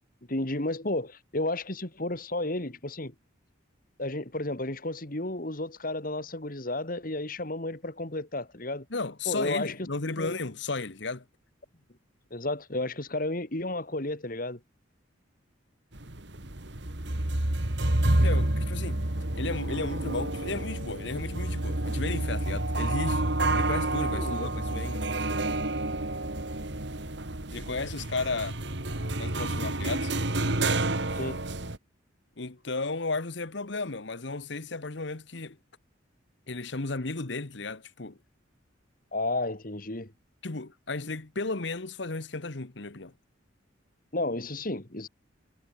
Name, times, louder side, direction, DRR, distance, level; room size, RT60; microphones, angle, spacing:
voice 1, 0.3-3.1 4.0-8.9 9.3-9.7 10.2-10.4 12.3-14.6 24.1-24.5 31.2-31.4 39.1-40.1 44.1-45.1, left 2 dB, 45° left, 2.5 m, -32 dB
voice 2, 8.9-11.2 18.2-19.0 19.3-23.3 23.5-25.0 27.5-28.6 29.2-30.1 32.4-35.6 36.5-38.2 40.4-43.1, left 3 dB, 60° left, 1.3 m, -34 dB
sound 1, 15.9-31.8, right 1 dB, 60° right, 2.5 m, -29 dB
head